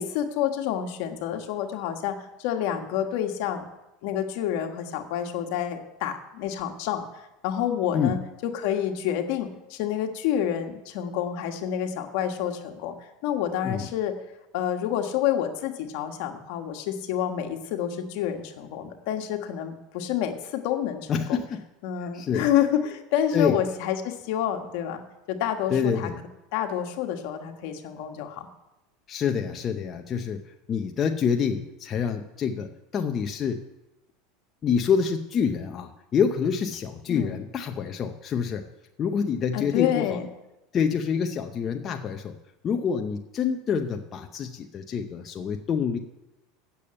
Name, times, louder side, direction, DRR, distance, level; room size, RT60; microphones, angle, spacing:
voice 1, 0.0-3.6 4.0-7.0 7.4-13.0 13.2-14.1 14.5-21.4 21.8-25.0 25.3-26.1 26.5-28.5 37.1-37.4 39.5-40.3, left 10 dB, 65° left, 5 dB, 1.4 m, -28 dB
voice 2, 21.1-21.6 22.1-22.5 23.3-23.6 25.7-26.2 29.1-33.6 34.6-38.7 39.0-40.0 40.7-42.4 42.6-46.0, left 6 dB, 35° left, 4 dB, 0.7 m, -27 dB
8.4 x 6.9 x 8.6 m, 0.96 s
supercardioid pair, 120°, 0 cm